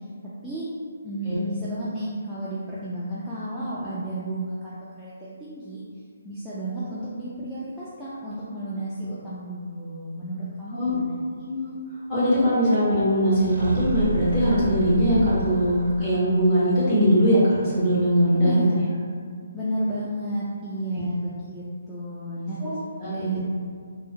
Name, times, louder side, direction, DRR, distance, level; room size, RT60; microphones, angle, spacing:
voice 1, 1.0-5.8 6.2-11.4 18.3-18.8 19.5-22.6 23.0-23.5, right 1 dB, ahead, -12 dB, 0.3 m, -32 dB
voice 2, 11.4-11.7 12.1-18.7 22.6-22.7 23.0-23.4, equal, 25° left, -12 dB, 1.3 m, -21 dB
sound 1, 13.3-16.3, right 1 dB, 70° right, 0.4 m, -31 dB
3.6 x 2.0 x 2.8 m, 2.1 s
hypercardioid pair, 160°, 0 cm